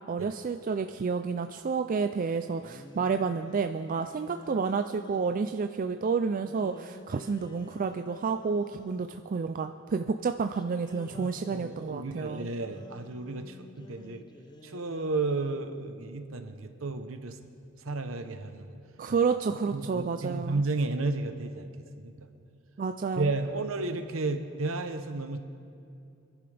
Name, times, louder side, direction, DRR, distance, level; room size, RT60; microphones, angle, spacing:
voice 1, 0.0-12.5 19.0-20.6 22.8-23.3, right 5 dB, 40° right, 8 dB, 0.4 m, -30 dB
sound 1, 2.3-5.6 6.4-9.4 10.5-15.8, left 2 dB, 20° left, 0.5 m, -51 dB
voice 2, 11.1-14.2 14.6-17.4 17.8-18.8 19.7-21.7 22.0-22.1 23.2-25.4, right 3 dB, 75° right, 7 dB, 0.9 m, -32 dB
26.0 x 11.0 x 3.4 m, 2.5 s
head